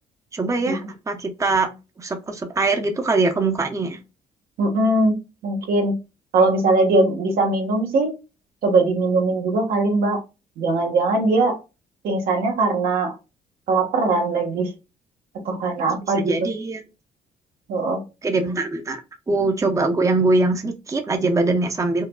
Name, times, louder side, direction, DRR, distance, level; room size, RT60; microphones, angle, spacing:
voice 1, 0.3-1.7 2.0-4.0 15.9-16.8 18.2-19.0 19.3-22.0, right 3 dB, 20° right, 5 dB, 0.7 m, -22 dB
voice 2, 4.6-5.2 5.4-6.0 6.3-8.2 8.6-10.2 10.6-11.6 12.0-13.1 13.7-14.7 15.4-16.4 17.7-18.0, right 2 dB, 80° right, 2 dB, 1.2 m, -20 dB
4.6 x 2.2 x 2.2 m, 0.27 s
cardioid pair, 95°, 15 cm